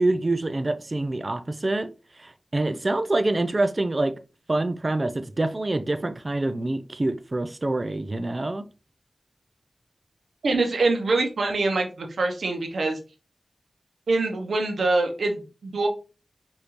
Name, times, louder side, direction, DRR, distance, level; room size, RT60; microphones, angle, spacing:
voice 1, 0.0-1.9 2.2-4.2 4.5-8.6, right 2 dB, 40° right, 0.4 m, -26 dB
voice 2, 10.4-13.0 14.1-15.9, right 3 dB, 90° right, 0.8 m, -24 dB
4.9 x 2.7 x 3.0 m
wide cardioid pair, 65°, 0 cm